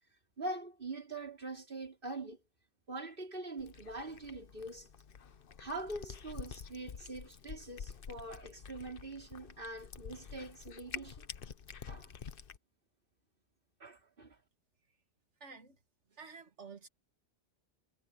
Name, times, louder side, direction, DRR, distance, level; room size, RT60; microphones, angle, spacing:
voice 1, 0.4-2.4 2.9-4.9 5.6-11.3 11.9-12.1 13.8-14.4, right 2 dB, 50° right, 4.0 m, -43 dB
Cat, 3.6-12.6, left 7 dB, 55° left, 1.0 m, -48 dB
voice 2, 15.4-15.8 16.1-16.9, right 5 dB, 75° right, 2.0 m, -50 dB
omnidirectional pair, 1.2 m